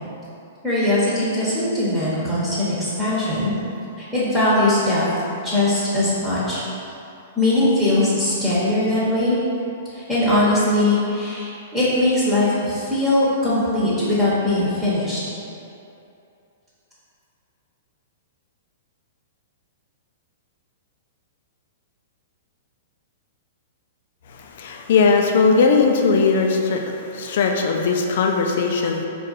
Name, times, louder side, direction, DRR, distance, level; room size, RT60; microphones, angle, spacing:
voice 1, 0.6-3.5 4.0-5.1 5.4-6.6 7.4-9.4 9.9-15.2, left 1 dB, 15° right, -10 dB, 1.1 m, -20 dB
voice 2, 24.3-29.1, left 4 dB, 60° left, 2 dB, 0.4 m, -19 dB
4.1 x 2.5 x 4.0 m, 2.7 s
hypercardioid pair, 115°, 0 cm